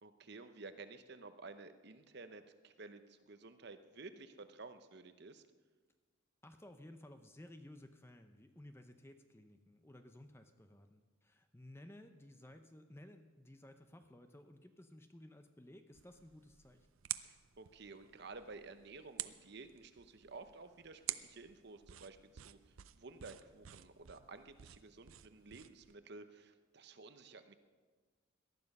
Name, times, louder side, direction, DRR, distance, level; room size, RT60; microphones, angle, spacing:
voice 1, 0.0-5.4 17.2-27.5, right 3 dB, 55° right, 9 dB, 0.8 m, -53 dB
voice 2, 6.4-16.9, left 1 dB, 10° left, 7 dB, 0.7 m, -57 dB
sound 1, 15.9-25.9, right 14 dB, 80° right, 0.6 m, -49 dB
18.5 x 12.0 x 5.4 m, 1.4 s
head